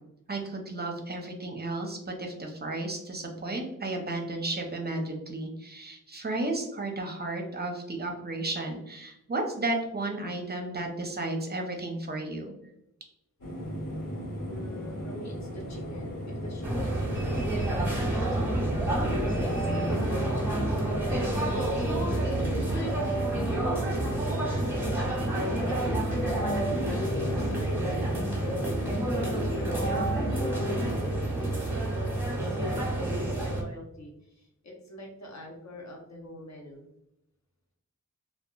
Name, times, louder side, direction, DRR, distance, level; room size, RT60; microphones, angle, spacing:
voice 1, 0.3-12.5, right 2 dB, 30° right, 2 dB, 0.6 m, -33 dB
sound 1, 13.4-30.2, equal, 80° left, 1.3 m, -38 dB
voice 2, 14.4-18.8 19.1-20.3 21.0-24.8 25.3-30.8 31.3-36.9, equal, 55° left, 0 dB, 0.8 m, -44 dB
sound 2, 16.6-33.6, right 1 dB, 5° right, 0.9 m, -29 dB
sound 3, 17.7-32.0, equal, 25° left, 0.8 m, -36 dB
2.8 x 2.3 x 2.3 m, 0.84 s
wide cardioid pair, 85°, 32 cm